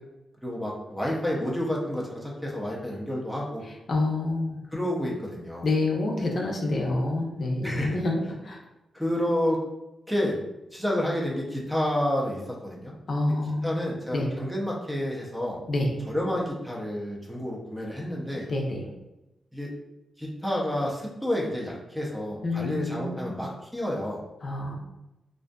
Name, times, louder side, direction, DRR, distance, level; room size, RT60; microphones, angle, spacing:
voice 1, 0.4-3.6 4.7-5.7 7.6-8.0 8.9-9.6 10.1-10.4 10.7-12.9 13.6-15.6 16.1-18.5 19.5-19.7 20.2-24.2, left 1 dB, 5° right, -3 dB, 0.6 m, -29 dB
voice 2, 3.9-4.6 5.6-8.1 8.4-8.6 13.1-13.8 14.1-14.3 15.7-15.9 18.5-18.8 22.4-23.3 24.4-24.8, left 2 dB, 50° left, -1 dB, 0.5 m, -27 dB
2.5 x 2.4 x 2.2 m, 0.94 s
cardioid pair, 95°, 0 cm